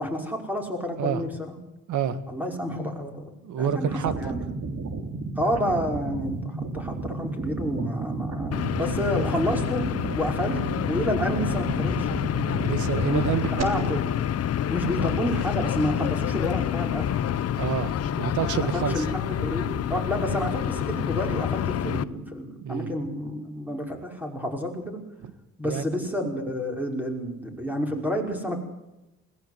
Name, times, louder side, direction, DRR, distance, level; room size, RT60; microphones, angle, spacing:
voice 1, 0.0-1.6 2.3-3.3 3.6-4.5 5.4-9.8 10.1-10.6 10.9-12.1 12.9-13.2 13.6-14.0 14.7-17.1 18.7-25.0 25.6-28.6, equal, 5° right, 2 dB, 5.5 m, -29 dB
voice 2, 1.9-2.2 3.4-4.3 12.6-13.9 17.5-19.1 21.8-22.3 22.6-22.9 25.2-25.3 25.6-25.9, right 8 dB, 75° right, 13 dB, 1.9 m, -29 dB
sound 1, 3.6-13.6, right 3 dB, 60° right, 3.4 m, -32 dB
sound 2, 8.5-22.0, left 10 dB, 55° left, 0.9 m, -28 dB
21.5 x 17.0 x 8.2 m, 0.94 s
cardioid pair, 90°, 30 cm